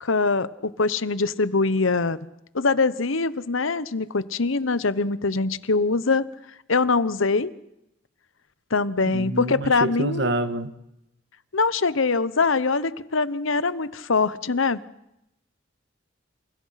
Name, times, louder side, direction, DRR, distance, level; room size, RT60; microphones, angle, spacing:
voice 1, 0.0-2.2 2.5-6.2 6.7-7.5 8.7-10.4 11.5-14.8, left 4 dB, 80° left, 1.0 m, -23 dB
voice 2, 9.1-10.7, right 2 dB, 60° right, 1.7 m, -27 dB
28.0 x 27.5 x 5.8 m
head